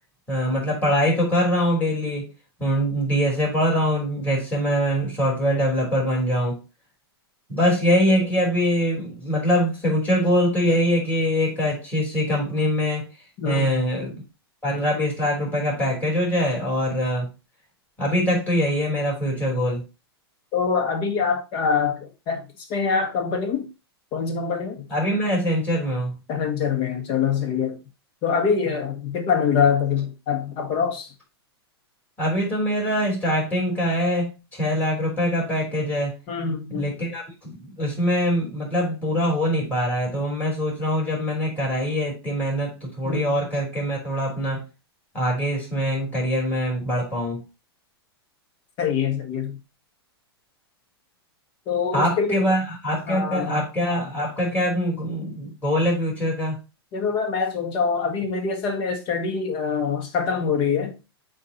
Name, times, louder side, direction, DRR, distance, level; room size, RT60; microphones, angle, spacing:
voice 1, 0.3-2.3 2.6-6.6 7.5-13.1 13.4-14.2 14.6-17.3 18.0-19.8 24.9-26.2 32.2-36.1 36.7-44.6 45.1-47.4 51.9-56.6, equal, 10° left, 3.4 m, -23 dB
voice 2, 13.4-13.9 20.5-23.7 24.1-24.9 26.3-27.8 28.2-31.1 36.3-37.0 43.0-43.4 48.8-49.6 51.7-52.4 53.1-53.6 56.9-61.1, left 6 dB, 40° left, 1.6 m, -24 dB
8.1 x 2.8 x 4.2 m
hypercardioid pair, 115°, 14 cm